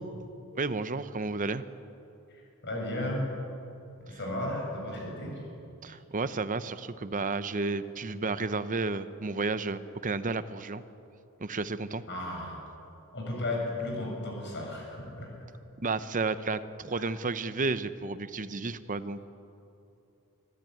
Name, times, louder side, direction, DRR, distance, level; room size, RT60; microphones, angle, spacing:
voice 1, 0.6-1.6 4.1-4.2 5.8-10.8 11.4-12.0 15.8-19.3, right 3 dB, 35° right, 13 dB, 0.8 m, -32 dB
voice 2, 2.6-3.3 4.1-5.4 12.1-12.6 13.1-15.3, left 1 dB, 55° left, 0 dB, 6.9 m, -34 dB
25.0 x 14.0 x 9.2 m, 2.8 s
head